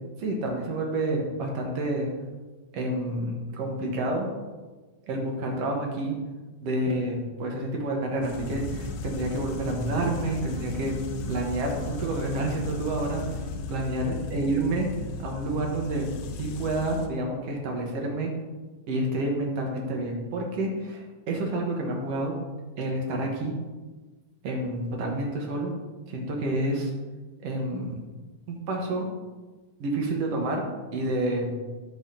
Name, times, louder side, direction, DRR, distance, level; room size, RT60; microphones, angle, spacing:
voice 1, 0.2-2.1 2.7-4.3 5.1-6.1 6.6-11.0 11.3-13.4 13.7-14.9 15.2-16.1 16.4-18.3 18.9-22.4 22.8-23.5 24.4-25.7 26.1-26.9 27.4-28.0 28.5-29.1 29.8-30.6 30.9-31.5, right 1 dB, 60° right, 1 dB, 2.2 m, -29 dB
sound 1, 8.2-17.1, left 5 dB, 75° left, 1.7 m, -37 dB
sound 2, 8.4-15.8, right 3 dB, 80° right, 1.4 m, -40 dB
12.5 x 5.7 x 2.9 m, 1.3 s
omnidirectional pair, 3.5 m